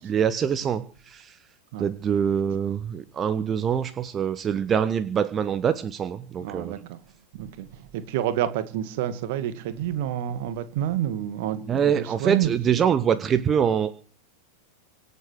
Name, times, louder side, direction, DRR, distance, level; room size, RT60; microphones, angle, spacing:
voice 1, 0.0-1.3 1.8-6.7 11.7-14.0, right 8 dB, 25° right, 1.3 m, -24 dB
voice 2, 6.4-7.0 7.3-7.7 7.9-12.9, right 11 dB, 50° right, 2.2 m, -29 dB
25.5 x 8.6 x 6.5 m
figure-of-eight pair, 90°, 0 cm